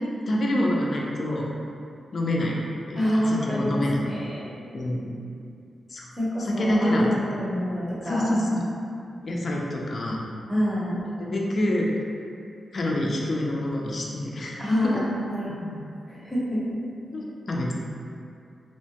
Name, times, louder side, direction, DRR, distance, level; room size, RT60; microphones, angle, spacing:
voice 1, 0.0-1.5 2.1-2.6 2.9-4.0 4.7-5.1 5.9-6.1 6.4-7.4 8.0-8.6 9.2-10.2 11.3-11.9 12.7-15.0 17.1-17.7, left 1 dB, 45° left, -2 dB, 0.3 m, -26 dB
voice 2, 2.9-4.5 6.2-8.3 10.5-11.0 14.6-15.8 16.1-16.8, equal, 10° right, -8 dB, 0.7 m, -27 dB
2.7 x 2.1 x 2.8 m, 2.4 s
wide cardioid pair, 130°, 0 cm